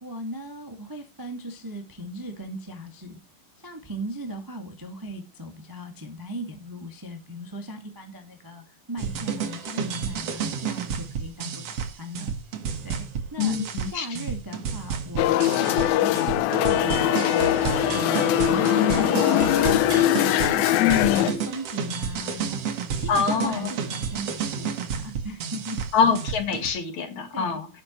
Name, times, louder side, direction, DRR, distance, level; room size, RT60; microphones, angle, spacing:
voice 1, 0.0-3.2 3.6-12.3 12.8-13.6 13.9-25.9 27.3-27.6, equal, 15° right, 0.6 m, -38 dB
sound 1, 9.0-26.7, right 6 dB, 55° right, 2.0 m, -31 dB
voice 2, 13.4-14.1 20.8-21.4 23.1-23.7 25.9-27.7, left 6 dB, 55° left, 2.8 m, -24 dB
sound 2, 15.2-21.3, left 14 dB, 80° left, 2.5 m, -21 dB
Wind instrument woodwind instrument, 16.5-20.5, right 13 dB, 85° right, 2.6 m, -34 dB
17.5 x 6.6 x 3.1 m
omnidirectional pair, 4.4 m